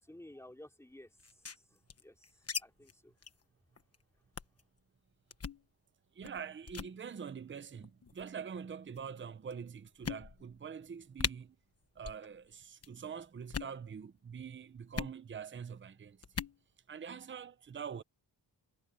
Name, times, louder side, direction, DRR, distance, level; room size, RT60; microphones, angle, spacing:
voice 1, 0.0-3.1, left 1 dB, 5° left, 4.5 m, -55 dB
sound 1, 1.2-2.6 2.9-3.0 3.2-3.4 3.8-4.0 4.4-4.6 5.3-5.6 6.2-6.4 6.7-6.9 7.8-8.3 9.0-9.1 9.5-9.6 10.0-10.6 10.9-11.0 11.2-11.3 12.0-12.3 12.5-12.9 13.4-13.8 14.9-15.2 16.2-16.6, left 5 dB, 35° left, 1.3 m, -39 dB
voice 2, 6.1-11.6 12.0-16.5 16.9-18.0, right 7 dB, 25° right, 0.6 m, -45 dB
wide cardioid pair, 180°, 44 cm